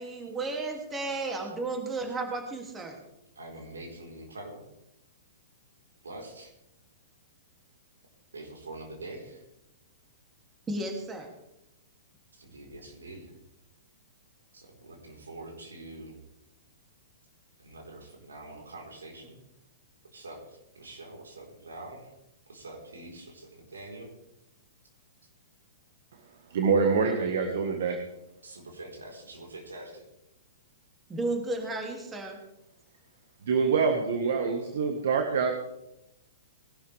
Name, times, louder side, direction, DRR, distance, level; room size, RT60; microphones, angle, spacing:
voice 1, 0.0-3.0 10.7-11.3 31.1-32.4, right 2 dB, 15° right, 2 dB, 2.6 m, -33 dB
voice 2, 3.3-4.7 6.0-6.5 8.3-9.4 12.3-13.3 14.5-16.2 17.6-19.4 20.1-22.1 22.5-24.1 28.4-30.1, right 2 dB, 80° right, 0 dB, 4.2 m, -45 dB
voice 3, 26.5-28.0 33.4-35.5, right 5 dB, 65° right, 5 dB, 1.6 m, -25 dB
20.0 x 12.0 x 3.5 m, 0.88 s
figure-of-eight pair, 115°, 0 cm